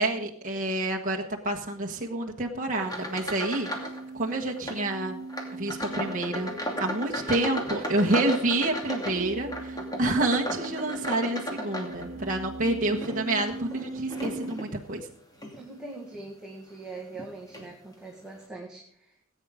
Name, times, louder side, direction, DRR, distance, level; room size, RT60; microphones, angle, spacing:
voice 1, 0.0-3.7 4.1-5.2 5.5-6.5 6.8-15.1, right 2 dB, 40° right, 0 dB, 1.3 m, -28 dB
sound 1, 2.8-4.0 4.3-4.8 5.3-12.4 12.9-14.7 15.3-15.6 16.1-16.3 17.1-17.2 17.5-17.7, equal, 20° left, 2.5 m, -35 dB
sound 2, 3.5-14.7, right 3 dB, 70° right, 1.1 m, -40 dB
voice 2, 15.5-19.1, right 3 dB, 5° right, -2 dB, 2.0 m, -42 dB
18.5 x 8.8 x 4.9 m, 0.69 s
head